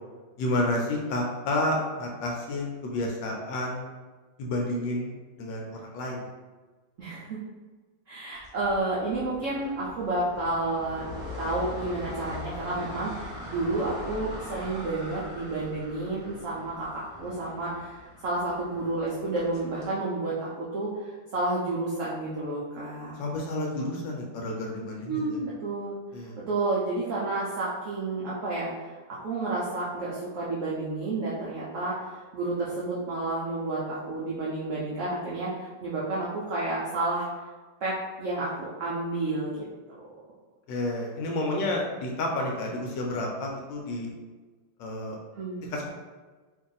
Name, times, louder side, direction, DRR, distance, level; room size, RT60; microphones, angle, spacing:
voice 1, 0.4-3.9 4.4-5.1 5.4-6.3 23.2-25.4 26.1-26.4 40.7-44.1 44.8-45.2 45.7-45.9, left 1 dB, 80° left, 0 dB, 1.3 m, -30 dB
voice 2, 7.0-7.4 8.1-23.2 25.1-26.0 26.5-37.3 37.8-39.5 45.3-45.7, right 2 dB, 70° right, -7 dB, 0.7 m, -31 dB
sound 1, 8.4-19.9, left 1 dB, ahead, 1.0 m, -42 dB
3.0 x 2.6 x 3.8 m, 1.3 s
omnidirectional pair, 2.1 m